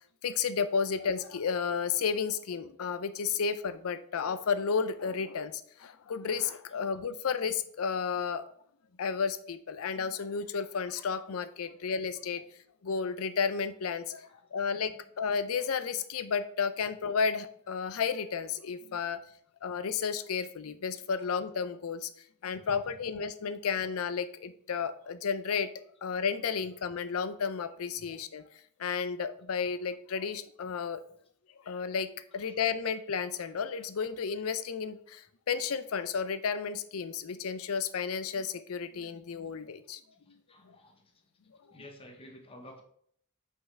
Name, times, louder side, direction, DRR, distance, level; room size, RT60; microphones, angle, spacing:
voice 1, 0.2-8.4 9.0-12.5 12.8-19.2 19.6-22.1 22.4-25.7 26.0-28.4 28.8-31.0 31.6-40.0 40.6-40.8, left 6 dB, 65° left, 13 dB, 0.5 m, -32 dB
voice 2, 22.4-22.7 28.0-28.1 40.2-41.1 41.7-42.8, left 1 dB, 25° left, 3 dB, 1.0 m, -52 dB
5.7 x 5.5 x 3.3 m, 0.64 s
head